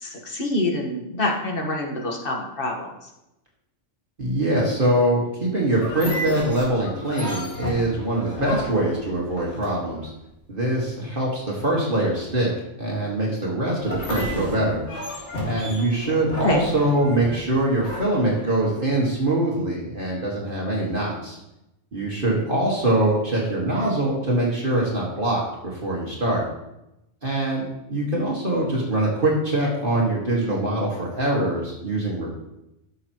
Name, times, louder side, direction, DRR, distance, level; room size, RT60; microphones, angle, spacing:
voice 1, 0.0-2.9 8.4-8.6 16.4-16.6, left 2 dB, 45° left, 1 dB, 1.6 m, -26 dB
voice 2, 4.2-10.1 10.5-12.5 12.8-14.8 15.4-21.4 21.9-26.4 27.2-32.3, right 1 dB, 45° right, -4 dB, 1.9 m, -23 dB
sound 1, 5.7-10.0 13.8-18.9, left 1 dB, 65° left, 2.3 m, -33 dB
13.5 x 6.7 x 3.0 m, 0.90 s
omnidirectional pair, 1.3 m